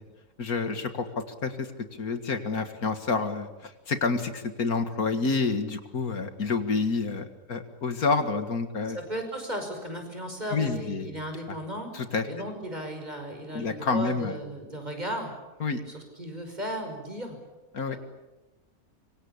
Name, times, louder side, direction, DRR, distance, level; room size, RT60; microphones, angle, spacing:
voice 1, 0.4-9.0 10.5-11.1 11.9-12.3 13.5-14.4 15.6-15.8 17.7-18.0, left 4 dB, 70° left, 9 dB, 2.3 m, -28 dB
voice 2, 8.9-11.9 12.3-15.3 15.9-17.4 17.9-18.0, right 1 dB, 25° right, 4 dB, 5.8 m, -35 dB
26.0 x 25.0 x 8.5 m, 1.1 s
omnidirectional pair, 1.6 m